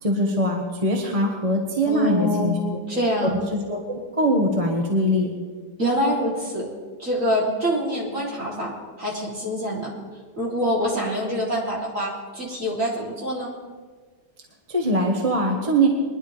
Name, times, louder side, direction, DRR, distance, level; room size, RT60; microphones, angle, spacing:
voice 1, 0.0-2.6 3.2-5.3 14.7-15.9, right 1 dB, 20° right, 0 dB, 1.3 m, -22 dB
voice 2, 1.9-3.4 5.8-6.7 7.0-9.9 10.4-13.5, equal, 50° right, -5 dB, 3.8 m, -25 dB
22.0 x 11.0 x 3.4 m, 1.5 s
omnidirectional pair, 1.8 m